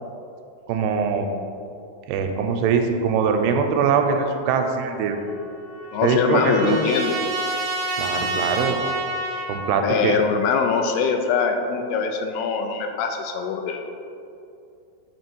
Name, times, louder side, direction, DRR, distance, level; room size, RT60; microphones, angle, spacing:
voice 1, 0.7-1.3 2.1-5.2 6.0-6.9 8.0-8.8 9.4-10.2, right 5 dB, 85° right, 5 dB, 2.5 m, -22 dB
Trumpet, 5.0-9.8, right 2 dB, 60° right, 2.7 m, -29 dB
voice 2, 5.9-7.2 9.8-13.8, left 5 dB, 85° left, 4 dB, 2.4 m, -23 dB
7.0 x 3.1 x 6.0 m, 2.6 s
omnidirectional pair, 4.5 m